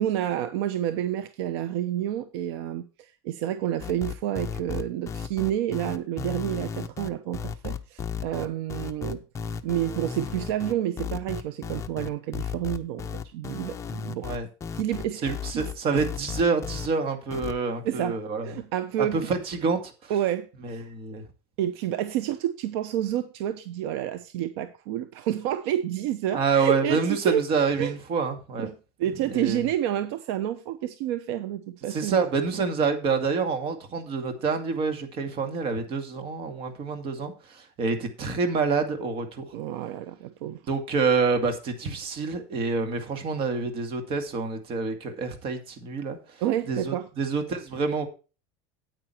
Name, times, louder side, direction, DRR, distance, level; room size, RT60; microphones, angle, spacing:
voice 1, 0.0-9.2 9.6-14.3 14.7-16.0 17.8-19.3 20.1-20.8 21.6-27.5 27.8-27.9 28.6-32.2 39.5-40.6 46.4-47.1, right 11 dB, 75° right, 0.9 m, -29 dB
sound 1, 3.8-16.9 17.3-17.5, left 7 dB, 20° left, 0.8 m, -34 dB
voice 2, 15.2-18.5 19.0-20.1 20.6-21.2 26.3-28.7 29.3-29.6 31.9-39.5 40.7-46.2 46.7-48.1, right 4 dB, 45° right, 2.3 m, -27 dB
9.1 x 9.0 x 4.5 m
supercardioid pair, 145°, 13 cm